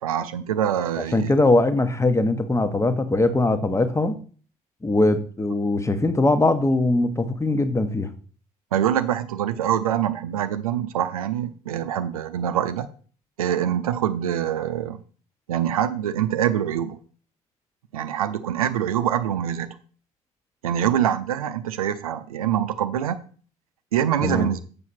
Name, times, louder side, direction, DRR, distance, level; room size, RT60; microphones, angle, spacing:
voice 1, 0.0-1.3 8.7-12.9 13.4-15.0 15.5-17.0 17.9-19.8 20.6-23.2 23.9-24.6, right 10 dB, 75° right, 11 dB, 0.6 m, -24 dB
voice 2, 1.1-4.2 4.8-8.1 24.2-24.5, left 2 dB, 15° left, 10 dB, 1.2 m, -21 dB
7.2 x 7.0 x 4.3 m, 0.41 s
figure-of-eight pair, 50°, 18 cm